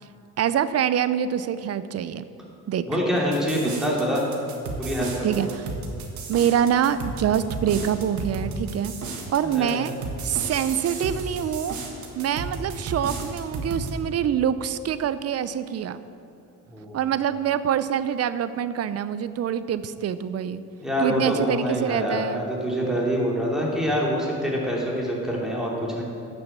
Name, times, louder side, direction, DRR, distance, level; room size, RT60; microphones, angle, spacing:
voice 1, 0.4-2.3 2.7-2.9 5.2-5.7 6.3-8.9 9.3-9.9 10.2-11.8 12.2-16.0 16.9-20.6 21.0-22.5, right 9 dB, 55° right, 14 dB, 0.5 m, -25 dB
voice 2, 2.9-4.3 4.8-5.6 9.4-9.9 16.7-17.0 20.8-26.0, equal, ahead, -4 dB, 3.0 m, -26 dB
sound 1, 3.3-13.9, right 3 dB, 70° right, 1.6 m, -33 dB
11.0 x 6.9 x 6.8 m, 2.6 s
cardioid pair, 90°, 30 cm